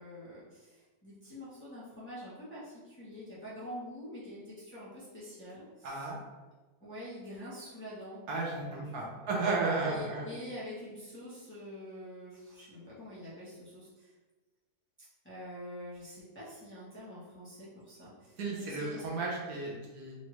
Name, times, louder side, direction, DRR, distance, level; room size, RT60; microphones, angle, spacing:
voice 1, 0.0-6.1 6.8-8.2 8.6-9.3 9.8-14.1 15.2-19.0, left 1 dB, 10° left, -10 dB, 1.0 m, -46 dB
voice 2, 5.8-6.2 8.3-10.2 18.4-20.2, right 3 dB, 75° right, -3 dB, 1.4 m, -33 dB
4.5 x 2.7 x 3.0 m, 1.2 s
omnidirectional pair, 1.7 m